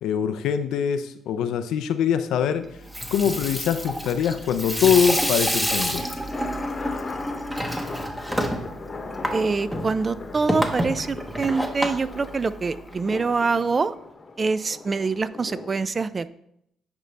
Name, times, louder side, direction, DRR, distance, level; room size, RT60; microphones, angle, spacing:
voice 1, 0.0-2.7 3.1-6.0, left 8 dB, 85° left, 9 dB, 0.4 m, -23 dB
Water tap faucet / Sink (filling or washing), 2.7-12.9, equal, 10° right, 1.0 m, -29 dB
sound 1, 5.7-15.7, left 3 dB, 35° left, 1.0 m, -39 dB
voice 2, 9.3-13.9 14.4-16.3, right 4 dB, 35° right, 15 dB, 0.4 m, -25 dB
9.0 x 5.2 x 3.3 m, 0.75 s
cardioid pair, 90°, 0 cm